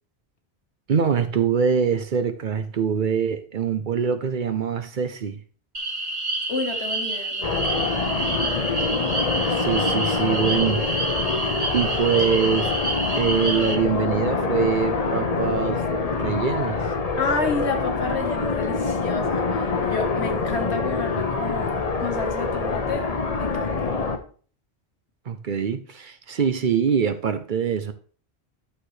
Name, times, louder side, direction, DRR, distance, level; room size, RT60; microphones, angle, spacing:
voice 1, 0.9-5.4 9.5-10.8 11.7-12.7 13.2-15.8 16.1-16.9 25.3-27.9, right 7 dB, 55° right, 0.8 m, -24 dB
sound 1, 5.7-13.8, right 2 dB, 35° right, 1.4 m, -28 dB
voice 2, 6.5-7.9 17.2-23.1 23.4-24.0, left 3 dB, 85° left, 1.7 m, -30 dB
sound 2, 7.4-24.2, left 4 dB, 40° left, 0.8 m, -25 dB
11.0 x 6.5 x 3.2 m
omnidirectional pair, 1.1 m